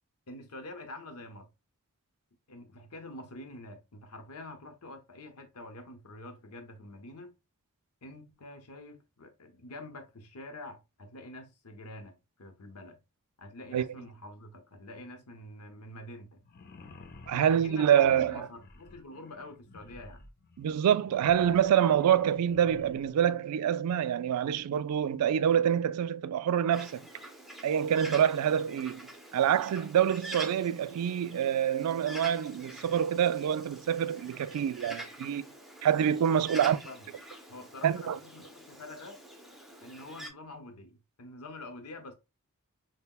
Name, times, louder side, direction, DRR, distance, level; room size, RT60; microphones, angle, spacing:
voice 1, 0.3-1.5 2.5-7.4 8.0-13.0 13.4-16.4 17.3-20.2 36.5-37.1 37.5-39.2 39.8-42.1, left 2 dB, 80° left, 0.8 m, -46 dB
sound 1, 16.4-23.2, left 3 dB, 45° left, 0.5 m, -52 dB
voice 2, 17.3-18.5 20.6-27.0 27.6-29.0 29.3-35.5 35.8-36.8 37.8-38.2, right 9 dB, 85° right, 0.3 m, -26 dB
Bird, 26.7-40.3, right 1 dB, ahead, 0.5 m, -47 dB
5.4 x 2.1 x 2.3 m
head